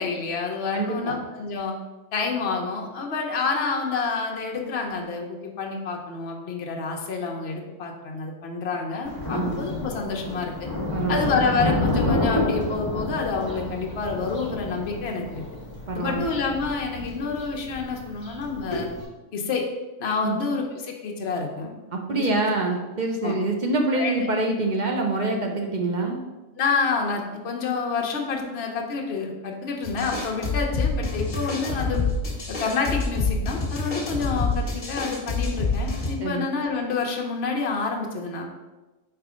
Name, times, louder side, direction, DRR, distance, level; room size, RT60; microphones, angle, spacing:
voice 1, 0.0-1.7 2.1-10.7 11.1-15.4 15.9-18.9 19.3-19.7 20.0-21.7 22.1-22.5 23.2-23.3 23.9-24.3 26.6-32.1 32.5-38.4, left 4 dB, 55° left, 0 dB, 1.1 m, -28 dB
voice 2, 0.7-1.2 9.3-9.6 10.9-11.3 15.9-16.2 20.2-20.4 21.9-26.2 36.2-36.5, right 2 dB, 45° right, 2 dB, 0.7 m, -25 dB
Thunder, 9.0-19.0, left 2 dB, 15° left, 1.7 m, -29 dB
sound 1, 29.8-36.1, left 3 dB, 40° left, 1.4 m, -27 dB
4.6 x 4.2 x 5.0 m, 1.1 s
omnidirectional pair, 1.4 m